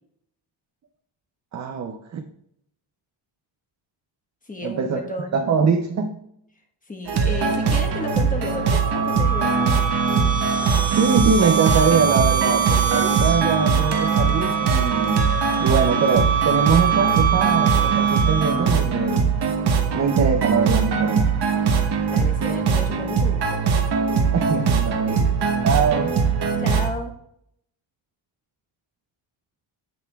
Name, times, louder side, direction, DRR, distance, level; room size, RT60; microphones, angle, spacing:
voice 1, 1.5-2.2 4.6-5.0 5.3-6.2 10.9-19.3 19.9-21.4 24.3-25.2 25.6-26.2, right 5 dB, 35° right, 5 dB, 0.5 m, -23 dB
voice 2, 4.5-5.4 6.9-9.8 22.1-23.6 25.1-25.2 26.6-27.1, left 2 dB, 15° left, 3 dB, 1.2 m, -33 dB
sound 1, 7.1-26.9, right 5 dB, 55° right, 1.2 m, -21 dB
sound 2, 8.5-18.9, right 6 dB, 70° right, 1.4 m, -25 dB
9.1 x 7.9 x 2.3 m, 0.74 s
wide cardioid pair, 155°, 48 cm